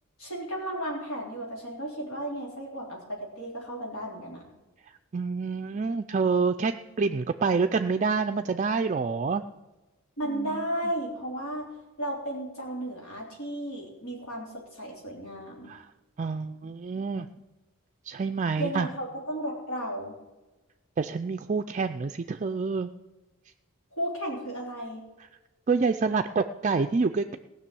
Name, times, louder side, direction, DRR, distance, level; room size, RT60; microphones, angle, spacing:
voice 1, 0.2-4.5 10.2-11.7 12.0-15.7 18.6-20.1 23.9-25.0, right 1 dB, 85° left, -2 dB, 3.4 m, -34 dB
voice 2, 5.1-9.4 10.3-10.6 15.7-15.9 16.2-17.3 18.1-18.9 21.0-22.9 25.7-27.4, right 4 dB, 35° right, 7 dB, 0.4 m, -27 dB
16.5 x 6.1 x 8.4 m, 1.1 s
head